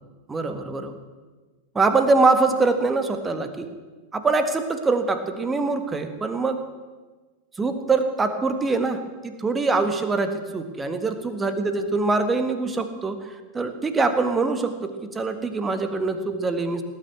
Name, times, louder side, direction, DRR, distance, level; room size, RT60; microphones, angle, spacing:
voice 1, 0.3-0.9 1.7-3.7 4.1-6.6 7.6-16.8, right 3 dB, 15° right, 9 dB, 1.6 m, -24 dB
18.0 x 9.6 x 7.9 m, 1.3 s
figure-of-eight pair, 90°, 0 cm